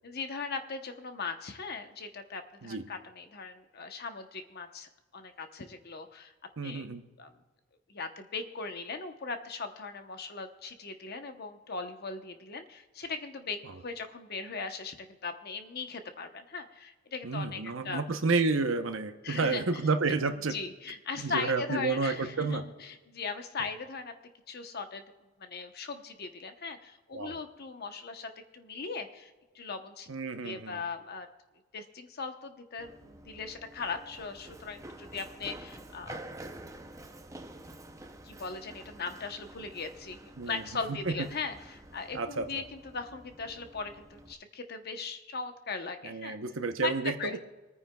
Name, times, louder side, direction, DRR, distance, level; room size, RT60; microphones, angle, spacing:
voice 1, 0.0-6.3 6.6-6.9 7.2-7.3 7.9-18.0 19.2-19.7 20.5-24.1 24.5-25.0 25.4-30.1 30.4-31.3 31.7-36.3 38.2-46.4 46.8-47.4, left 4 dB, 50° left, 7 dB, 0.9 m, -39 dB
voice 2, 6.6-7.0 13.6-13.7 17.2-20.6 21.2-22.6 27.1-27.4 30.1-30.8 40.4-40.6 40.9-41.1 42.1-42.6 46.0-47.4, right 4 dB, 65° right, 7 dB, 0.8 m, -30 dB
Run, 32.8-44.3, right 1 dB, 15° right, 0.6 m, -49 dB
25.5 x 9.6 x 2.3 m, 1.2 s
head